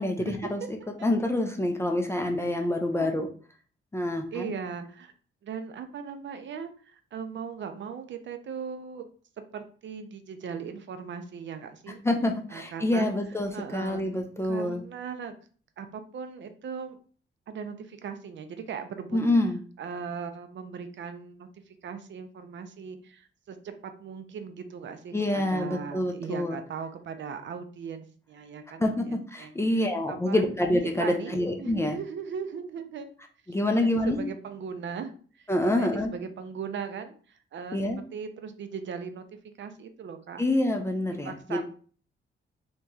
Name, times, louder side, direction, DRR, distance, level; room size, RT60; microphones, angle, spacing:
voice 1, 0.0-3.3 3.9-4.5 12.0-14.8 19.1-19.6 25.1-26.6 28.8-32.0 33.5-34.2 35.5-36.1 37.7-38.0 40.4-41.6, left 1 dB, 15° left, 3 dB, 0.3 m, -27 dB
voice 2, 2.5-3.2 4.3-5.1 5.4-9.1 9.5-12.0 12.5-13.1 13.5-14.0 14.4-15.3 15.8-17.0 17.5-19.2 19.8-21.5 21.8-29.6 30.1-30.5 31.0-33.1 33.8-35.1 35.4-35.5 35.8-37.8 38.1-39.3 39.6-40.4 41.2-41.6, right 6 dB, 65° right, 7 dB, 0.5 m, -38 dB
3.0 x 2.7 x 3.5 m, 0.43 s
wide cardioid pair, 170°, 21 cm